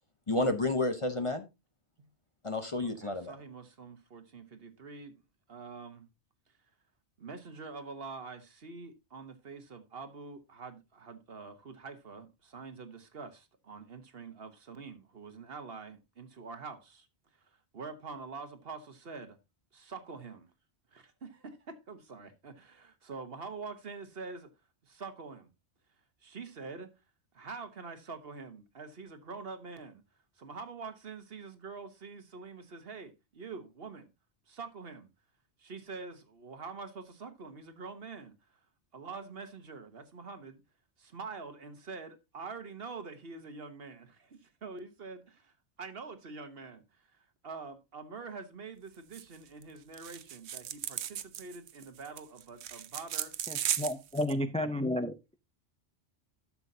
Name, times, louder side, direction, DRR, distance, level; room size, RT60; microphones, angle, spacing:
voice 1, 0.3-1.4 2.4-3.3, left 2 dB, 30° left, 0.8 m, -30 dB
voice 2, 3.0-5.2 5.5-6.1 7.2-17.1 17.5-19.4 19.7-20.5 20.9-24.5 24.8-25.5 26.2-26.9 27.3-30.0 30.4-34.1 34.5-35.1 35.6-38.3 38.9-40.6 41.0-53.3, right 4 dB, 60° right, 1.4 m, -45 dB
sound 1, 49.1-49.4 49.6-49.7 49.9-54.3, right 10 dB, 75° right, 0.9 m, -36 dB
voice 3, 53.5-55.4, left 1 dB, 10° left, 0.3 m, -32 dB
11.5 x 7.3 x 2.7 m
omnidirectional pair, 1.2 m